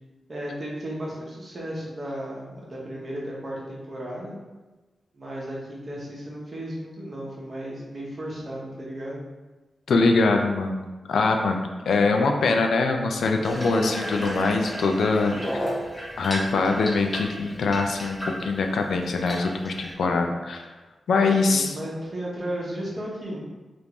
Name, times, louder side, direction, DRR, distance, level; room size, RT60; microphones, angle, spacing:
voice 1, 0.3-4.3 5.1-9.2 15.3-15.8 21.3-23.4, right 1 dB, 40° right, -4 dB, 0.8 m, -34 dB
voice 2, 9.9-15.3 16.2-20.7 21.1-21.7, left 3 dB, 90° left, 4 dB, 0.3 m, -23 dB
Water tap faucet / Bathtub (filling or washing), 13.4-19.9, equal, 5° left, 0.7 m, -33 dB
3.5 x 2.5 x 2.9 m, 1.2 s
wide cardioid pair, 140°, 0 cm